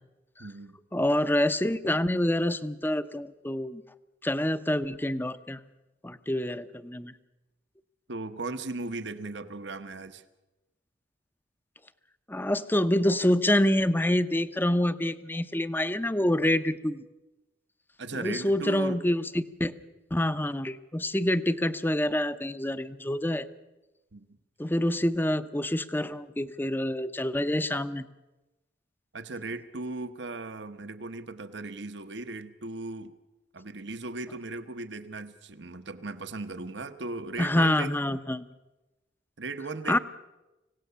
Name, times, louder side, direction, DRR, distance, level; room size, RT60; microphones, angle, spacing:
voice 1, 0.4-0.8 8.1-10.2 18.0-19.0 24.1-24.4 29.1-33.1 33.5-37.9 39.4-40.0, right 3 dB, 70° right, 11 dB, 1.2 m, -37 dB
voice 2, 0.9-3.8 4.2-5.6 6.0-7.1 12.3-17.0 18.1-19.7 20.1-23.5 24.6-28.0 37.4-38.4 39.9-40.0, left 1 dB, 10° left, 12 dB, 0.7 m, -27 dB
26.0 x 17.0 x 6.9 m, 1.0 s
head